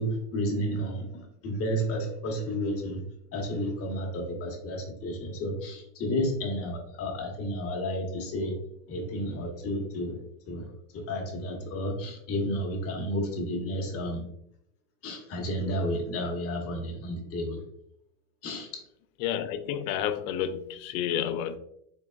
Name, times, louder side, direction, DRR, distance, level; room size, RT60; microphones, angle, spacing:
voice 1, 0.0-3.0 3.3-8.6 8.9-10.2 10.5-10.7 10.9-14.2 15.0-17.6 18.4-18.8, equal, 30° left, 0.9 m, -31 dB
voice 2, 19.2-21.6, left 9 dB, 65° left, 0.5 m, -30 dB
3.8 x 3.5 x 2.2 m
supercardioid pair, 135°, 47 cm